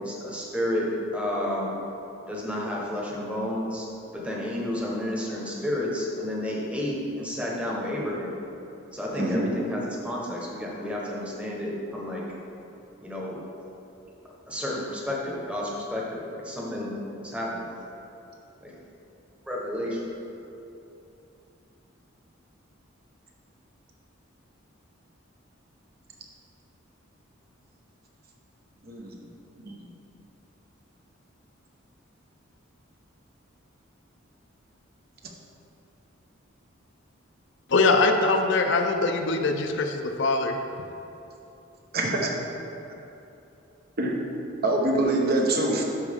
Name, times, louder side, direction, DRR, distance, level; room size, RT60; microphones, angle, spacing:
voice 1, 0.0-1.8 2.3-3.9 4.1-8.4 8.9-12.3 13.0-13.4 14.5-17.7 18.6-18.7 19.4-20.1, left 1 dB, 5° right, -4 dB, 1.1 m, -31 dB
voice 2, 9.1-9.5 28.8-29.1 29.6-29.9 41.9-42.4 44.0-44.2 44.6-45.8, right 2 dB, 50° right, 0 dB, 1.0 m, -25 dB
voice 3, 37.7-40.9, left 3 dB, 60° left, 5 dB, 0.5 m, -23 dB
12.0 x 4.6 x 3.6 m, 2.9 s
head